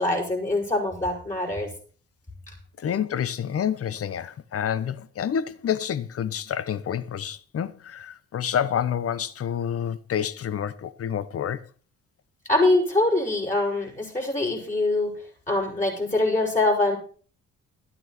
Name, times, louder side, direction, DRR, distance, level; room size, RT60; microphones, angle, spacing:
voice 1, 0.0-1.7 12.5-15.1 15.5-17.0, left 2 dB, 25° left, 6.4 m, -23 dB
voice 2, 2.8-11.6, left 9 dB, 50° left, 1.0 m, -28 dB
13.0 x 9.0 x 6.0 m
cardioid pair, 90°, 30 cm